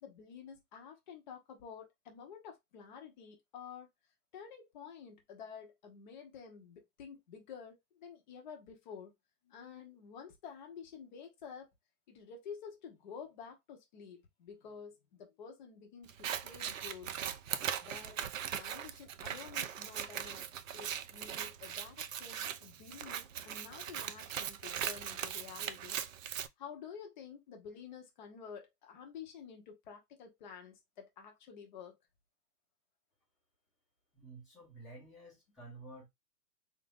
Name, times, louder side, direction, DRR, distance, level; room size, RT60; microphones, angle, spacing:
voice 1, 0.0-3.9 4.3-9.1 9.4-11.7 12.1-17.1 17.8-18.2 18.5-26.0 26.6-32.0, left 7 dB, 30° left, 0.9 m, -50 dB
Scissors, 16.1-26.5, right 9 dB, 55° right, 0.5 m, -40 dB
voice 2, 34.1-36.1, right 2 dB, ahead, 1.0 m, -51 dB
3.7 x 2.6 x 3.5 m
hypercardioid pair, 160°, 49 cm